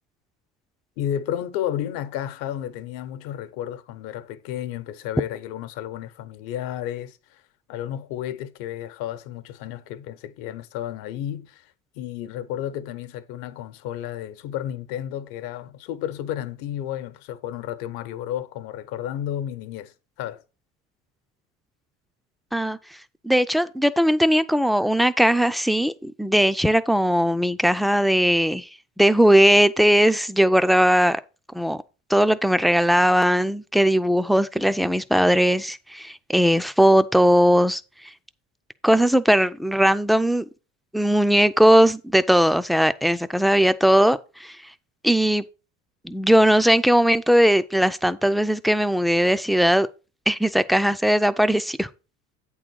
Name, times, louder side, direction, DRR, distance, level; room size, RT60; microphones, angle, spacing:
voice 1, 1.0-7.4 7.7-20.4, left 11 dB, 70° left, 1.0 m, -32 dB
voice 2, 23.2-28.7 29.0-31.2 31.5-31.8 32.1-37.8 38.8-40.4 40.9-44.6 45.0-45.4 46.0-49.9 50.3-51.9, equal, ahead, 0.4 m, -19 dB
8.4 x 3.9 x 6.2 m
supercardioid pair, 80°, 38 cm